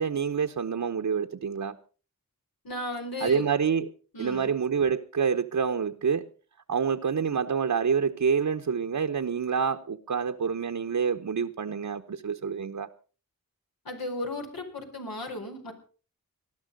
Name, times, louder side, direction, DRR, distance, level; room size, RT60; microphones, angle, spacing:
voice 1, 0.0-1.8 3.2-3.9 4.2-6.3 6.7-12.9, right 6 dB, 60° right, 1.0 m, -27 dB
voice 2, 2.6-3.5 4.1-4.5 13.8-15.7, left 1 dB, 80° left, 4.5 m, -35 dB
19.5 x 12.5 x 5.3 m
wide cardioid pair, 65°, 35 cm